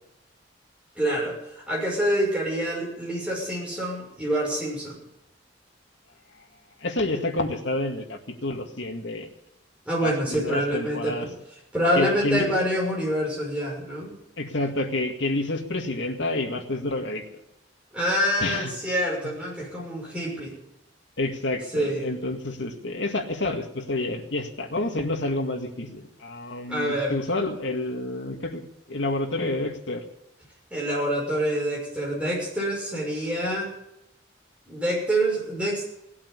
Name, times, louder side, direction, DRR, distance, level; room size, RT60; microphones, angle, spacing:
voice 1, 1.0-5.0 9.9-11.3 11.7-14.1 17.9-20.5 21.7-22.1 26.7-27.2 30.7-33.7 34.7-35.8, equal, 5° right, -3 dB, 6.1 m, -26 dB
voice 2, 6.8-9.3 10.0-11.3 12.0-12.5 14.4-17.2 18.4-18.7 21.2-28.6 28.9-30.0, left 2 dB, 70° left, 4 dB, 2.2 m, -29 dB
17.5 x 8.7 x 8.4 m, 0.83 s
head